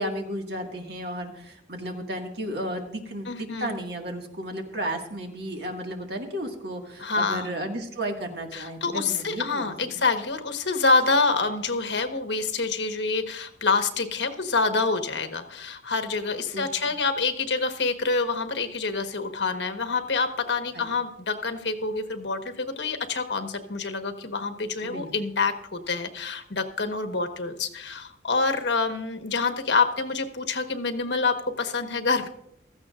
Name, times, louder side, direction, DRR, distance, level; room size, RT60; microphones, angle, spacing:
voice 1, 0.0-10.0 16.5-16.9 20.7-20.8 24.8-25.1, right 1 dB, 60° right, 3 dB, 1.9 m, -33 dB
voice 2, 3.3-3.7 7.0-7.5 8.5-32.3, left 4 dB, 70° left, 7 dB, 1.3 m, -27 dB
16.0 x 14.0 x 2.5 m, 0.77 s
head